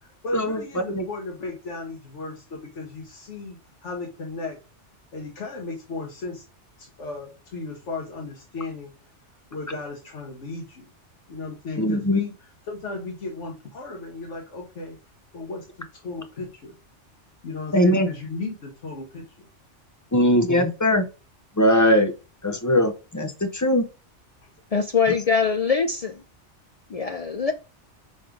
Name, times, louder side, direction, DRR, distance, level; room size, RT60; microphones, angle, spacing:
voice 1, 0.0-4.6 5.1-6.4 6.8-8.9 9.5-10.9 11.3-15.0 15.3-16.8 17.4-19.5, left 3 dB, 80° left, 1.5 m, -35 dB
voice 2, 11.8-12.2 17.7-18.1 20.1-21.1 21.6-22.1 22.4-23.9, left 1 dB, 20° left, 0.7 m, -20 dB
voice 3, 24.7-26.2 26.9-27.5, left 5 dB, 60° left, 0.3 m, -23 dB
4.6 x 4.1 x 5.0 m
omnidirectional pair, 1.2 m